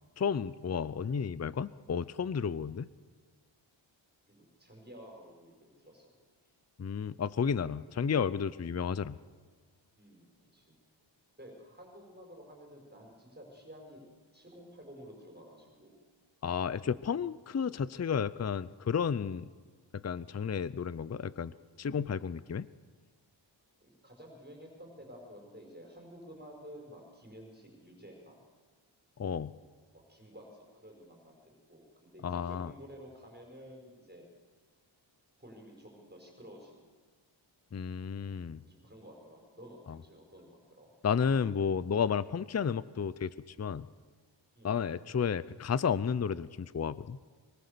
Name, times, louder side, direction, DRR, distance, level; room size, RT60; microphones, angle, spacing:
voice 1, 0.2-2.9 6.8-9.2 16.4-19.5 20.0-21.5 21.8-22.7 29.2-29.5 32.2-32.7 37.7-38.6 41.0-43.9 44.6-47.2, left 6 dB, 35° left, 17 dB, 0.6 m, -32 dB
voice 2, 4.3-6.1 6.4-6.5 10.0-10.8 11.4-14.0 14.3-16.0 23.8-28.4 29.9-34.3 35.4-36.9 38.6-40.9 44.5-44.8, equal, 20° right, 1 dB, 5.8 m, -52 dB
24.0 x 22.5 x 6.9 m, 1.4 s
wide cardioid pair, 75°, 46 cm